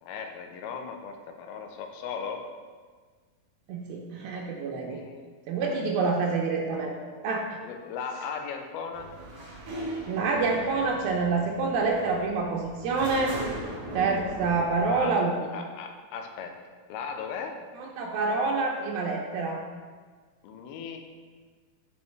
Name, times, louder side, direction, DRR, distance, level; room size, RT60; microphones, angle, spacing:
voice 1, 0.0-2.5 4.9-5.3 7.6-9.1 14.9-15.2 15.5-16.6 16.9-17.6 20.4-21.0, left 6 dB, 85° left, 5 dB, 2.5 m, -37 dB
voice 2, 3.7-5.0 5.5-6.9 7.2-7.5 10.1-13.3 13.9-15.6 17.8-19.6, right 4 dB, 85° right, 0 dB, 2.4 m, -27 dB
sound 1, 8.9-15.0, right 1 dB, 60° right, 1.5 m, -39 dB
6.9 x 5.3 x 3.2 m, 1.5 s
omnidirectional pair, 4.3 m